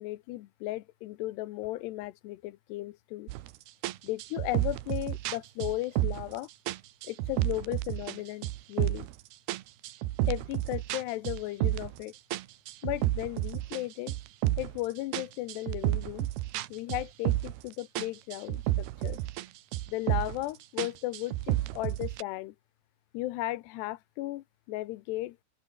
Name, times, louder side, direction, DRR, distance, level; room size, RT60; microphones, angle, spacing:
voice 1, 0.0-3.3 4.0-6.5 7.0-9.1 10.3-12.1 12.8-14.2 14.6-16.3 16.7-19.2 19.9-22.6 23.1-25.4, left 18 dB, 85° left, 3.1 m, -35 dB
sound 1, 3.3-3.5 3.8-6.4 6.7-8.2 8.4-9.2 9.5-12.0 12.3-14.8 15.1-17.7 18.0-19.5 19.7-20.4 20.8-22.2, right 16 dB, 75° right, 3.0 m, -31 dB
open air
omnidirectional pair, 4.7 m